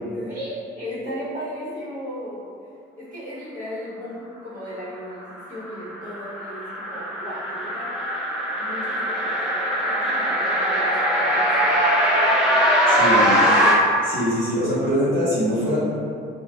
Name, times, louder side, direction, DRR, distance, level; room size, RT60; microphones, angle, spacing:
voice 1, 0.0-2.5 3.0-8.0 8.6-12.0 12.2-12.8, equal, 40° right, -10 dB, 1.3 m, -36 dB
sound 1, 5.4-13.7, equal, 5° right, 0.6 m, -21 dB
voice 2, 12.9-13.5 14.0-15.8, equal, 75° right, -10 dB, 0.8 m, -23 dB
3.1 x 2.3 x 2.4 m, 2.3 s
cardioid pair, 90°, 20 cm